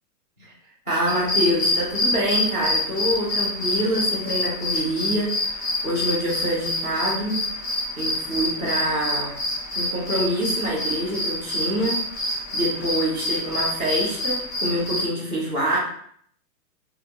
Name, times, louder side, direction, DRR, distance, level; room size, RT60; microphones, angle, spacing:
voice 1, 0.9-7.4 8.0-9.4 9.7-15.8, right 1 dB, 10° left, -12 dB, 0.6 m, -26 dB
sound 1, 1.1-15.1, left 1 dB, 30° left, 1.2 m, -27 dB
4.6 x 2.5 x 2.9 m, 0.63 s
hypercardioid pair, 165°, 49 cm